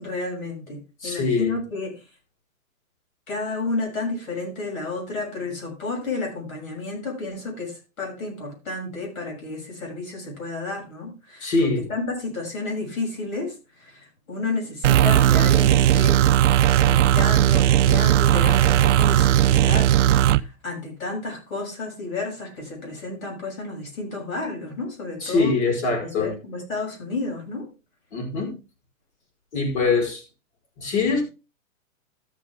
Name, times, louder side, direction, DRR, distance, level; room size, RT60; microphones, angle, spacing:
voice 1, 0.0-2.0 3.3-11.5 11.8-16.2 16.9-19.9 20.3-25.5 26.0-27.7, left 3 dB, 75° left, 7.0 m, -31 dB
voice 2, 1.0-1.5 11.4-11.8 25.2-26.3 28.1-28.5 29.5-30.2 30.8-31.2, left 4 dB, 55° left, 4.9 m, -23 dB
sound 1, 14.8-20.4, right 12 dB, 60° right, 0.5 m, -17 dB
13.5 x 7.0 x 3.5 m
hypercardioid pair, 150°, 42 cm